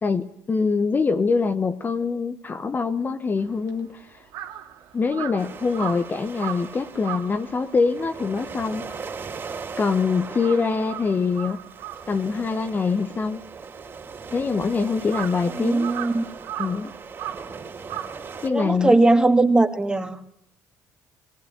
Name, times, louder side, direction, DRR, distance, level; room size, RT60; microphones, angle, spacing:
voice 1, 0.0-4.2 4.9-8.9 9.8-11.6 12.1-13.4 14.3-15.9 16.6-16.9 18.4-19.0, left 4 dB, 30° left, 8 dB, 1.3 m, -24 dB
Crow, 3.4-9.9 10.2-18.8, right 11 dB, 85° right, 2.3 m, -38 dB
sound 1, 5.4-18.5, right 5 dB, 40° right, 4.0 m, -39 dB
voice 2, 15.6-16.2 18.5-20.2, right 2 dB, 15° right, 6 dB, 2.3 m, -19 dB
19.5 x 19.0 x 9.0 m, 0.75 s
cardioid pair, 90°, 6 cm